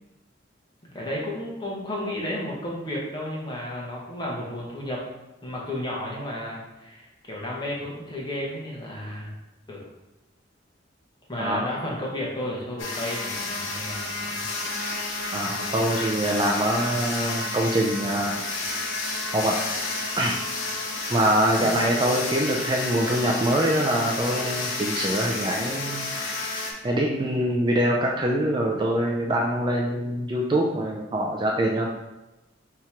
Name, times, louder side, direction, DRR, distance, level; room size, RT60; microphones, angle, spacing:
voice 1, 0.9-5.0 5.4-9.3 9.7-9.9 11.3-14.5 21.6-21.8, left 1 dB, 25° left, -4 dB, 1.0 m, -33 dB
sound 1, 12.8-26.7, left 2 dB, 85° left, 0.8 m, -31 dB
voice 2, 15.3-18.4 19.3-19.6 20.2-20.4 21.1-26.1 26.8-31.9, right 1 dB, 25° right, -1 dB, 0.4 m, -24 dB
3.6 x 2.9 x 4.4 m, 1.0 s
head